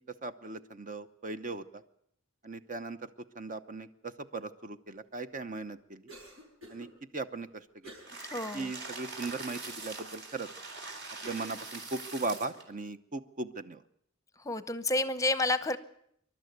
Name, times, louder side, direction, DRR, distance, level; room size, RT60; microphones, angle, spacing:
voice 1, 0.0-1.8 2.4-3.1 3.4-6.0 6.7-6.9 7.1-7.6 8.5-10.5 11.2-13.8, right 3 dB, 40° right, 11 dB, 0.8 m, -38 dB
Cough, 6.1-6.9 7.8-8.2 8.6-8.7 9.2-9.9 10.5-10.6 11.2-11.6, equal, 75° right, 7.7 m, -50 dB
sound 1, 8.1-12.6, right 3 dB, 55° right, 4.1 m, -43 dB
voice 2, 8.3-8.7 14.4-15.8, left 2 dB, 15° left, 13 dB, 0.8 m, -30 dB
26.5 x 12.5 x 9.3 m, 0.71 s
head